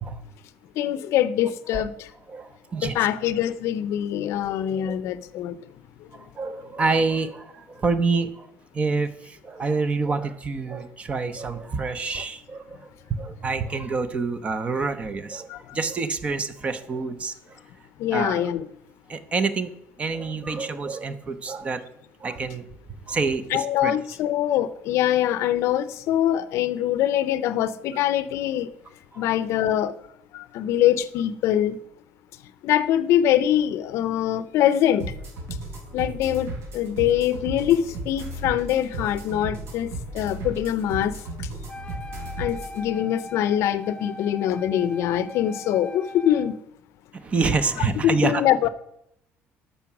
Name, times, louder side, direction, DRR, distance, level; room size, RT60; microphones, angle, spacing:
voice 1, 0.8-2.1 2.8-5.6 6.0-6.1 15.5-15.8 18.0-18.7 23.5-28.7 29.2-30.0 30.3-31.8 32.6-35.1 35.9-41.5 42.4-46.6 48.0-48.7, left 11 dB, 60° left, 15 dB, 0.6 m, -23 dB
voice 2, 2.3-2.9 4.9-5.0 6.1-8.5 8.7-17.6 18.1-18.5 19.1-19.7 20.0-21.8 22.2-22.6 23.1-23.9 29.1-29.2 47.1-48.4, right 4 dB, 25° right, 12 dB, 0.7 m, -27 dB
sound 1, 35.0-42.8, right 1 dB, 60° right, 3.8 m, -35 dB
Wind instrument woodwind instrument, 41.7-46.6, left 1 dB, 15° left, 0.5 m, -40 dB
13.0 x 5.5 x 6.0 m, 0.78 s
cardioid pair, 170°, 5 cm